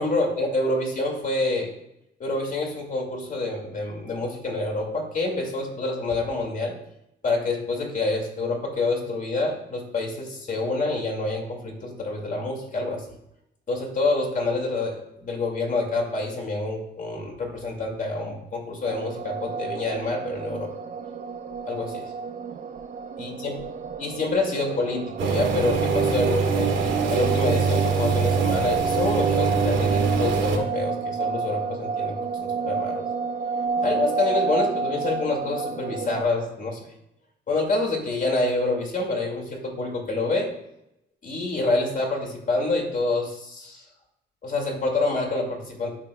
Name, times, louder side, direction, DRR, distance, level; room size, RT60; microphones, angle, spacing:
voice 1, 0.0-1.7 2.2-6.8 7.2-13.1 13.7-20.7 21.7-22.1 23.2-23.6 24.0-33.1 33.8-36.9 37.5-40.5 41.2-43.8 44.4-45.9, left 2 dB, 40° left, 1 dB, 2.1 m, -27 dB
sound 1, 18.9-36.2, right 5 dB, 45° right, 0.7 m, -30 dB
sound 2, 25.2-30.6, right 5 dB, 85° right, 1.5 m, -23 dB
12.5 x 4.9 x 2.3 m, 0.83 s
cardioid pair, 90°, 20 cm